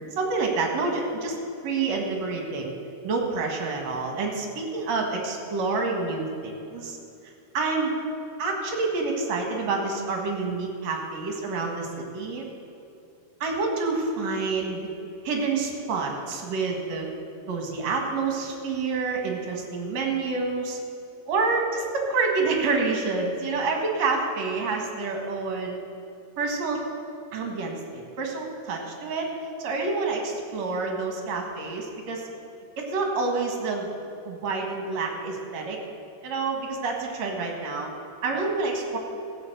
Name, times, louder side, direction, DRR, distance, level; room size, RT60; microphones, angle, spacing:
voice 1, 0.1-1.4 1.6-2.7 3.0-7.0 7.5-7.9 8.4-12.5 13.4-14.9 15.2-17.1 17.5-20.8 21.3-25.8 26.4-26.8 27.3-29.3 29.6-32.3 32.8-33.9 34.2-35.8 36.2-37.9 38.2-39.0, right 3 dB, 60° right, 1 dB, 2.7 m, -28 dB
15.5 x 7.0 x 7.9 m, 2.7 s
omnidirectional pair, 3.6 m